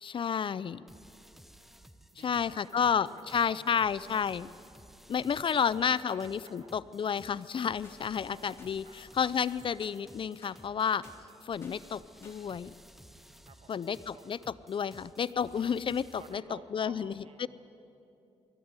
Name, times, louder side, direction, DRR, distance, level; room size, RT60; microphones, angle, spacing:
voice 1, 0.0-0.8 2.2-4.5 5.1-11.0 11.4-12.7 13.7-14.4 14.7-16.4 16.7-17.2, left 7 dB, 50° left, 18 dB, 0.5 m, -31 dB
sound 1, 0.9-16.4, equal, ahead, 0.8 m, -56 dB
voice 2, 2.1-4.2 6.1-6.7 8.3-9.0 12.6-14.2 16.2-17.5, right 5 dB, 60° right, 6 dB, 2.1 m, -55 dB
sound 2, 7.8-8.0 8.6-8.7 9.2-9.4 9.8-10.0 10.4-10.6 11.0-11.2 11.6-11.8 12.2-12.4, left 2 dB, 20° left, 3.8 m, -55 dB
21.0 x 14.5 x 9.6 m, 2.7 s
cardioid pair, 85°, 11 cm